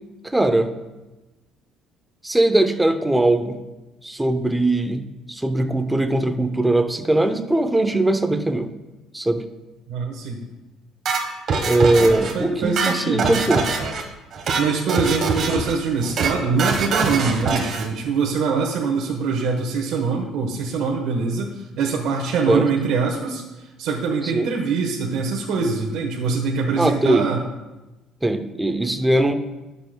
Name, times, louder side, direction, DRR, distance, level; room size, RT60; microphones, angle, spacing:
voice 1, 0.2-0.7 2.2-3.6 4.0-8.7 9.1-9.4 11.6-13.8 22.5-22.7 24.3-24.5 26.8-27.3 28.2-29.3, right 1 dB, 5° right, 7 dB, 0.6 m, -20 dB
voice 2, 9.9-10.4 11.9-13.4 14.6-27.4, right 5 dB, 65° right, 0 dB, 1.1 m, -24 dB
sound 1, 11.1-12.3 12.6-14.0 14.3-14.6 14.9-15.7 16.0-16.3 16.6-17.9, right 4 dB, 40° right, 1.2 m, -23 dB
19.5 x 6.8 x 2.2 m, 1.1 s
cardioid pair, 160°, 0 cm